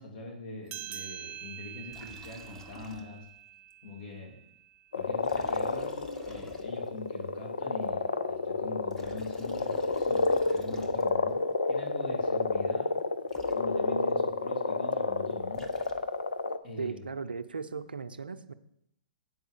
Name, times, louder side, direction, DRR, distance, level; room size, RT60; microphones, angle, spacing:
voice 1, 0.0-3.2 3.8-4.4 4.9-6.0 6.3-11.4 11.7-12.9 13.5-15.7 16.6-17.0, left 2 dB, 60° left, 0 dB, 3.3 m, -42 dB
sound 1, 0.7-5.6, right 11 dB, 25° right, 0.5 m, -46 dB
Liquid, 1.9-3.4 3.7-3.8 5.2-7.1 8.7-11.4 13.0-13.1 13.3-14.1 15.3-16.4, left 1 dB, 10° left, 1.0 m, -52 dB
sound 2, 4.9-16.6, left 3 dB, 85° left, 0.5 m, -30 dB
voice 2, 16.8-18.5, right 5 dB, 85° right, 11 dB, 0.5 m, -37 dB
8.9 x 4.9 x 6.5 m, 0.75 s
hypercardioid pair, 115°, 5 cm